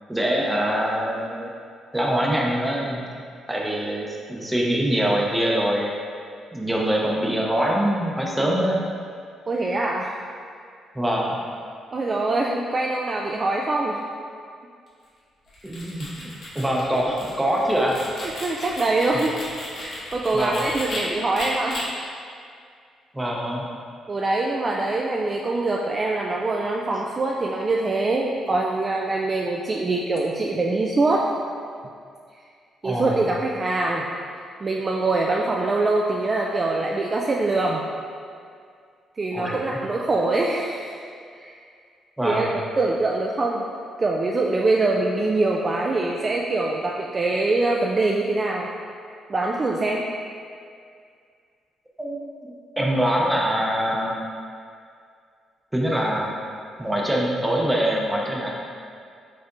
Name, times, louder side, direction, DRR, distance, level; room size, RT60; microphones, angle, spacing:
voice 1, 0.1-1.5 1.9-3.1 3.5-5.9 6.5-8.8 10.9-11.4 15.6-16.1 16.5-18.0 20.3-20.6 23.1-23.7 32.8-33.2 39.3-39.8 42.2-42.5 52.0-54.1 55.7-56.3 56.8-58.5, right 1 dB, 10° right, -2 dB, 0.7 m, -24 dB
voice 2, 9.5-10.2 11.9-14.0 18.4-19.4 19.8-21.9 24.1-31.3 32.8-34.1 34.6-37.8 39.2-41.0 41.3-41.5 42.2-42.5 42.8-43.6 44.0-48.7 49.3-50.1, right 2 dB, 35° right, -2 dB, 0.3 m, -24 dB
sound 1, 15.5-21.0 21.3-21.8, left 1 dB, 60° left, 1.4 m, -36 dB
5.2 x 3.4 x 2.5 m, 2.2 s
cardioid pair, 90°, 0 cm